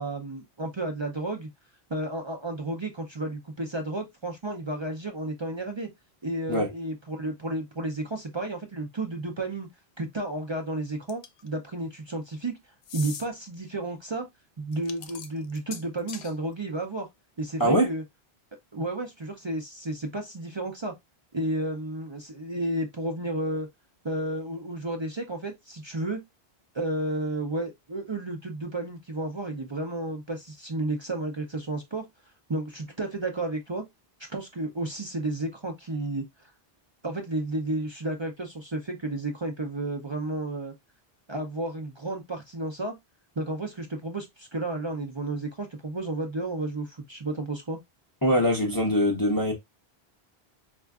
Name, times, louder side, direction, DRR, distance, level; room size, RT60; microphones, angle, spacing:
voice 1, 0.0-1.5 1.9-5.9 6.2-9.7 10.0-12.5 12.9-14.3 14.6-17.1 17.4-18.0 18.7-20.9 21.3-23.7 24.0-26.2 26.7-32.1 32.5-33.8 34.3-36.5 37.0-40.7 41.3-42.9 43.4-47.8, right 2 dB, 35° right, 0.5 m, -32 dB
sound 1, 11.1-11.5 12.8-13.3 14.7-16.3, left 7 dB, 80° left, 0.9 m, -40 dB
voice 2, 48.2-49.5, equal, 25° left, 0.7 m, -22 dB
4.3 x 2.4 x 2.3 m
omnidirectional pair, 1.1 m